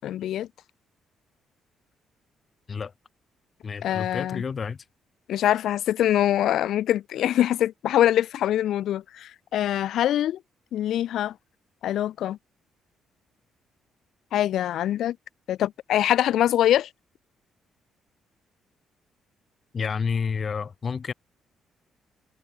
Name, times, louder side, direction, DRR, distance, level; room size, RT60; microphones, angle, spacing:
voice 1, 0.0-0.5 3.8-4.4 5.3-10.4 10.7-11.3 11.8-12.4 14.3-15.2 15.5-16.9, left 12 dB, 75° left, 4.5 m, -24 dB
voice 2, 3.6-4.8 19.7-21.1, left 5 dB, 40° left, 7.3 m, -29 dB
cardioid pair, 90°, 0 cm